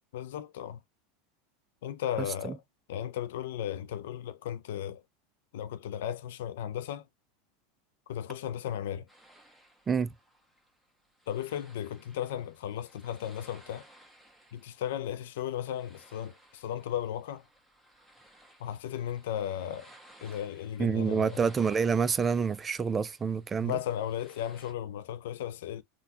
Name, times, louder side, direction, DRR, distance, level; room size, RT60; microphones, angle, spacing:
voice 1, 0.1-0.8 1.8-2.6 2.9-5.0 5.5-7.0 8.1-9.1 11.3-13.8 14.5-17.4 18.6-19.9 20.2-21.3 23.6-25.8, left 10 dB, 75° left, 0.4 m, -35 dB
voice 2, 2.2-2.6 9.9-10.1 20.8-23.8, right 6 dB, 25° right, 0.4 m, -28 dB
sound 1, 9.1-24.7, right 1 dB, ahead, 1.1 m, -58 dB
3.6 x 2.2 x 2.7 m
hypercardioid pair, 100°, 0 cm